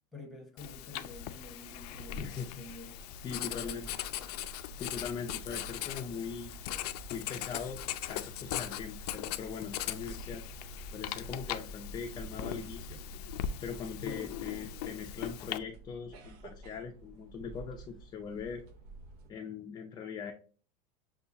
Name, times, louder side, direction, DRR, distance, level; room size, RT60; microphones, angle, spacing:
voice 1, 0.1-3.0 3.3-4.0 14.0-14.7, left 2 dB, ahead, 0.9 m, -48 dB
Writing, 0.6-15.6, left 11 dB, 80° left, 0.5 m, -40 dB
voice 2, 2.2-2.5 3.2-3.9 4.8-6.5 7.1-7.8 8.1-10.4 10.9-13.0 13.6-18.6 19.3-20.3, left 6 dB, 20° left, 0.4 m, -41 dB
sound 1, 3.7-19.3, right 2 dB, 75° right, 0.8 m, -50 dB
6.7 x 2.3 x 2.7 m
supercardioid pair, 145°, 20 cm